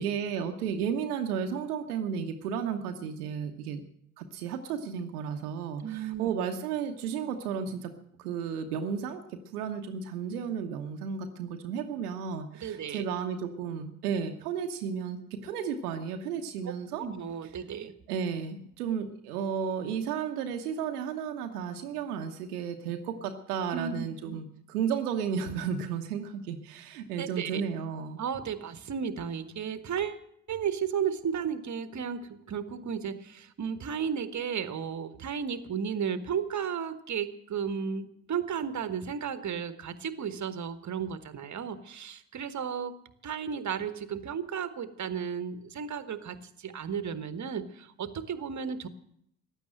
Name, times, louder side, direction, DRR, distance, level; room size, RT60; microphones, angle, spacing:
voice 1, 0.0-3.8 4.2-7.9 8.2-17.0 18.1-28.2, right 7 dB, 75° right, 5 dB, 1.1 m, -33 dB
voice 2, 5.8-6.3 12.6-13.1 17.0-17.9 23.7-24.4 27.2-27.6 28.2-42.9 43.2-48.9, right 7 dB, 40° right, 11 dB, 1.4 m, -34 dB
15.5 x 10.5 x 7.7 m, 0.72 s
figure-of-eight pair, 40°, 46 cm